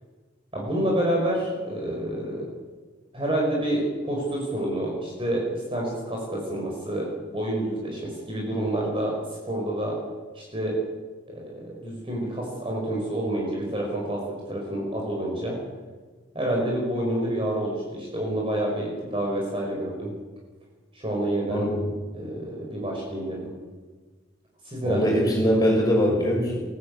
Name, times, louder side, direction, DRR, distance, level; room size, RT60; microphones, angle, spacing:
voice 1, 0.5-2.4 3.1-10.0 10.3-10.8 11.3-15.6 16.3-20.1 20.9-21.7 22.1-23.5 24.6-25.1, right 1 dB, 30° right, -2 dB, 5.3 m, -28 dB
voice 2, 24.8-26.6, equal, 20° left, -1 dB, 6.4 m, -22 dB
22.5 x 16.0 x 8.6 m, 1.4 s
head